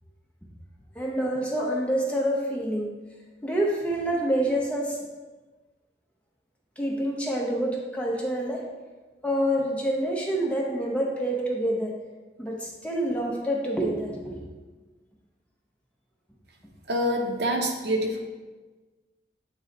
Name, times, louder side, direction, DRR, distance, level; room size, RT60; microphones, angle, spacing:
voice 1, 1.0-2.9 3.4-5.0 6.8-8.7 9.2-12.0 12.4-14.4, right 1 dB, 5° left, -2 dB, 0.7 m, -27 dB
voice 2, 16.9-18.2, equal, 65° right, 2 dB, 0.8 m, -26 dB
7.8 x 3.1 x 3.9 m, 1.3 s
head